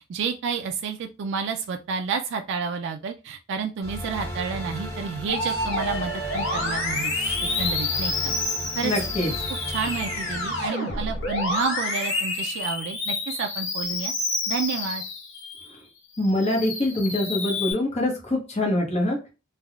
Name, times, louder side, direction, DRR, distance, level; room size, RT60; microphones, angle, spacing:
voice 1, 0.0-8.3 8.8-8.9 9.7-14.1 14.5-15.0, right 5 dB, 60° right, 5 dB, 0.3 m, -30 dB
sound 1, 3.8-10.7, equal, 15° left, 1.1 m, -35 dB
Musical instrument, 5.3-15.7 16.2-17.7, left 2 dB, 65° left, 1.0 m, -29 dB
voice 2, 8.8-9.3 16.2-19.2, left 1 dB, 30° left, 0 dB, 0.9 m, -24 dB
3.4 x 2.2 x 2.3 m, 0.30 s
head